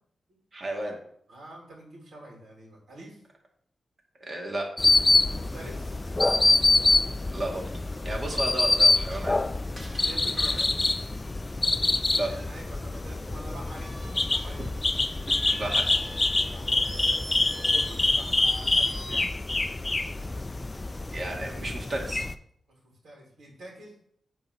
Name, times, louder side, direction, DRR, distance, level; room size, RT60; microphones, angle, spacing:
voice 1, 0.5-1.0 4.2-4.7 7.3-7.7 8.0-9.4 12.1-12.3 15.5-15.9 17.0-17.2 21.1-22.3, right 1 dB, 40° right, 0 dB, 2.3 m, -33 dB
voice 2, 1.3-3.2 5.3-6.1 10.0-10.7 12.2-13.9 14.3-14.7 16.4-16.8 17.5-19.4 22.7-24.0, right 1 dB, 70° right, -3 dB, 2.9 m, -46 dB
sound 1, 4.8-22.3, left 2 dB, 25° left, 0.4 m, -25 dB
Screech, 9.1-12.0 13.6-19.3, equal, 20° right, 2.3 m, -44 dB
8.8 x 4.1 x 5.7 m, 0.68 s
cardioid pair, 95°, 0 cm